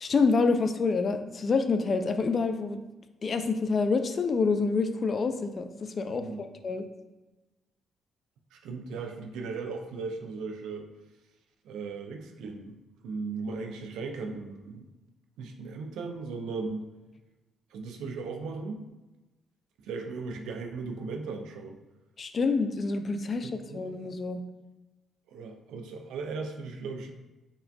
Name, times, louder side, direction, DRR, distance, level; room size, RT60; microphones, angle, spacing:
voice 1, 0.0-2.8 3.2-5.7 5.9-6.8 22.2-24.4, left 4 dB, 45° left, 8 dB, 0.3 m, -27 dB
voice 2, 6.1-6.5 8.5-10.9 11.6-12.8 13.0-14.9 15.4-16.9 17.7-18.9 19.8-21.8 23.4-23.8 25.3-27.1, right 4 dB, 85° right, 4 dB, 0.4 m, -37 dB
4.7 x 2.6 x 2.2 m, 1.1 s
cardioid pair, 90°, 0 cm